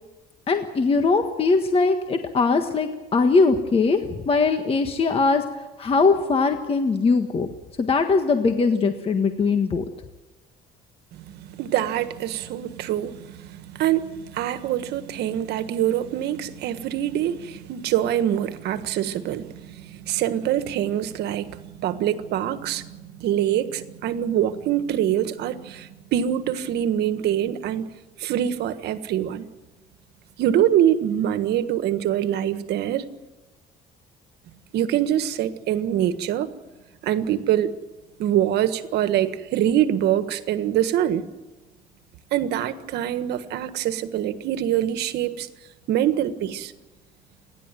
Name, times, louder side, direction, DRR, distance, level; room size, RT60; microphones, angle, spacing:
voice 1, 0.5-5.4 5.8-7.5 7.8-9.8, left 4 dB, 35° left, 6 dB, 1.6 m, -21 dB
voice 2, 11.1-27.9 28.2-29.4 30.4-33.1 34.7-36.5 37.0-37.8 38.2-41.2 42.3-45.5 45.9-46.7, right 11 dB, 75° right, 11 dB, 1.5 m, -24 dB
29.5 x 11.5 x 9.1 m, 1.1 s
cardioid pair, 110°, 17 cm